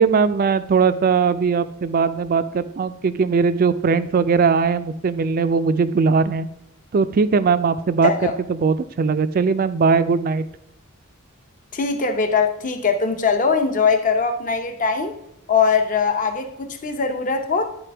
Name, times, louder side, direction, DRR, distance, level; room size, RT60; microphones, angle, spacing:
voice 1, 0.0-6.5 6.9-8.1 8.5-10.4, right 5 dB, 45° right, 0.4 m, -19 dB
voice 2, 8.0-8.3 11.7-15.1 15.5-17.7, left 5 dB, 40° left, 0.7 m, -21 dB
10.5 x 4.1 x 3.4 m
head